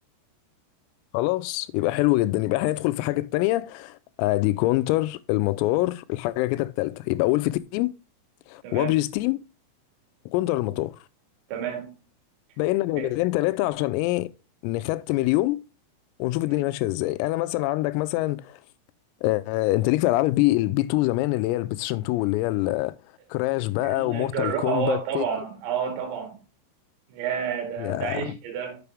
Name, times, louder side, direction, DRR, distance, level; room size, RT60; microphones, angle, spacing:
voice 1, 1.1-7.9 8.5-9.4 10.3-11.0 12.6-14.3 14.6-15.6 16.2-18.6 19.2-23.0 23.3-25.3 27.8-28.4, left 18 dB, 90° left, 3.3 m, -25 dB
voice 2, 11.5-11.9 13.0-13.1 23.8-26.4 27.1-28.8, right 8 dB, 65° right, 4.1 m, -30 dB
7.6 x 6.9 x 3.5 m
omnidirectional pair, 5.9 m